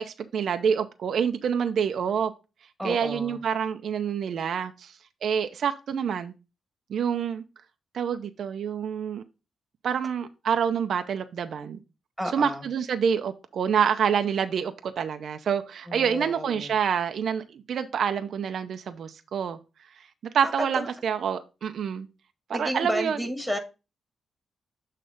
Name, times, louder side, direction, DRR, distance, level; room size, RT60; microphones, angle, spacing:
voice 1, 0.0-2.3 2.8-4.9 5.2-6.3 6.9-7.4 7.9-9.2 9.8-11.8 12.3-19.6 20.3-22.1 22.5-23.2, right 7 dB, 70° right, 0.6 m, -27 dB
voice 2, 2.8-3.4 12.2-12.6 15.9-16.7 20.4-20.8 22.5-23.6, equal, ahead, 1.8 m, -31 dB
7.9 x 3.3 x 5.0 m
cardioid pair, 90°, 0 cm